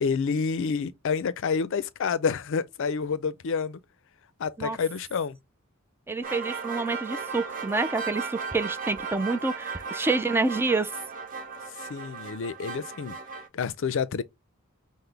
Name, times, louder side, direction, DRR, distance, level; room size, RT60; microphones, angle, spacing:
voice 1, 0.0-3.8 4.4-5.4 11.8-14.2, left 5 dB, 65° left, 0.4 m, -29 dB
voice 2, 6.1-10.9, right 3 dB, 10° right, 0.3 m, -28 dB
sound 1, 6.2-13.5, right 5 dB, 40° right, 0.8 m, -36 dB
5.8 x 2.0 x 3.3 m
head